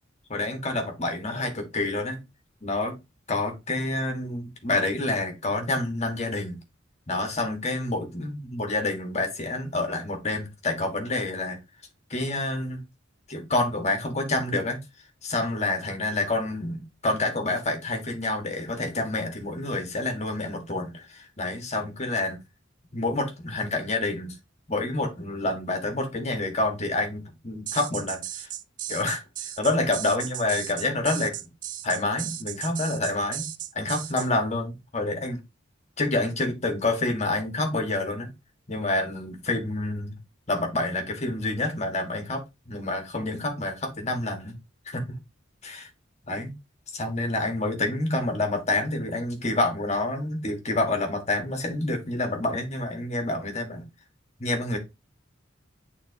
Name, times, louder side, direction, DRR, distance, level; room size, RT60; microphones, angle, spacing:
voice 1, 0.3-2.2 2.6-3.0 3.3-6.6 7.1-11.6 12.1-12.8 13.3-14.8 15.2-22.4 22.9-24.4 24.7-28.5 28.9-31.4 31.8-33.5 33.7-35.4 36.0-38.3 38.7-40.2 40.5-44.6 44.9-45.2 45.6-45.9 46.2-46.5 46.9-53.8 54.4-54.8, left 2 dB, 35° left, 1.8 m, -28 dB
sound 1, 27.7-34.3, right 12 dB, 45° right, 0.6 m, -35 dB
8.8 x 4.1 x 2.9 m
head